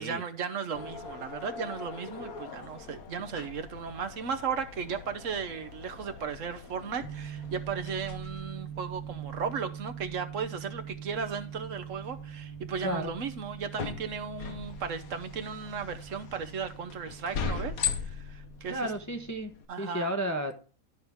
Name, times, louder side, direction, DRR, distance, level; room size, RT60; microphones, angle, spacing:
voice 1, 0.0-18.8 19.7-20.1, right 6 dB, 65° right, 1.1 m, -36 dB
sound 1, 0.7-19.6, left 6 dB, 85° left, 1.5 m, -41 dB
sound 2, 7.0-19.3, right 10 dB, 35° right, 1.2 m, -44 dB
voice 2, 12.8-13.1 18.7-19.5 19.8-20.6, equal, 15° left, 0.7 m, -32 dB
12.0 x 5.6 x 3.5 m
omnidirectional pair, 1.5 m